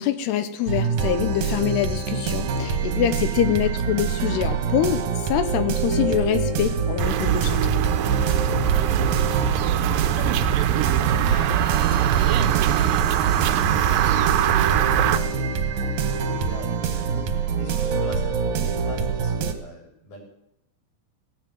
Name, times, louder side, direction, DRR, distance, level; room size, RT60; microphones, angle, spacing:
voice 1, 0.0-7.7, left 10 dB, 80° left, 10 dB, 2.8 m, -25 dB
sound 1, 0.7-19.5, right 5 dB, 65° right, 1.9 m, -25 dB
voice 2, 3.2-3.7 8.7-10.7 11.0-20.2, left 1 dB, 60° left, 1 dB, 5.5 m, -43 dB
sound 2, 7.0-15.2, right 11 dB, 80° right, 2.1 m, -22 dB
17.0 x 8.9 x 7.8 m, 0.81 s
omnidirectional pair, 4.9 m